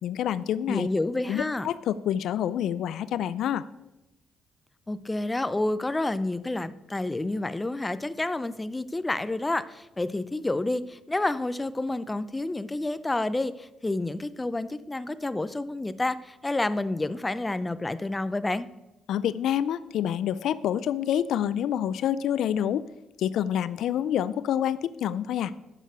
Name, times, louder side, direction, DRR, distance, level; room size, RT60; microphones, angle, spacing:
voice 1, 0.0-0.9 1.3-3.7 19.1-22.9 23.2-25.5, left 10 dB, 75° left, 17 dB, 0.4 m, -27 dB
voice 2, 0.7-1.7 4.9-18.7, left 2 dB, 15° left, 14 dB, 0.5 m, -29 dB
9.9 x 6.5 x 6.7 m, 0.99 s
cardioid pair, 90°, 0 cm